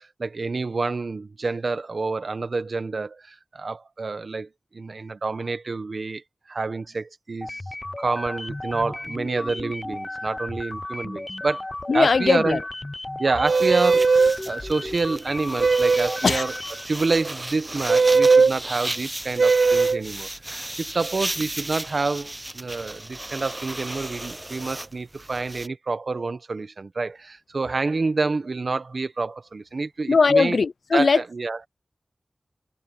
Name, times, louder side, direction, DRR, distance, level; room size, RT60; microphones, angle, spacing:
voice 1, 0.0-7.6 8.0-11.6 11.9-12.6 13.2-16.5 16.8-30.6 30.9-31.6, right 3 dB, 65° right, 1.2 m, -28 dB
sound 1, 7.4-17.0, left 2 dB, 30° left, 0.6 m, -34 dB
voice 2, 11.9-12.6 16.2-16.4 30.1-31.2, left 4 dB, 90° left, 0.4 m, -19 dB
sound 2, 13.4-14.4 15.6-16.2 17.9-18.5 19.4-20.0, right 4 dB, 85° right, 0.3 m, -18 dB
sound 3, 13.5-25.7, right 1 dB, 20° right, 0.5 m, -35 dB
wide cardioid pair, 75°, 0 cm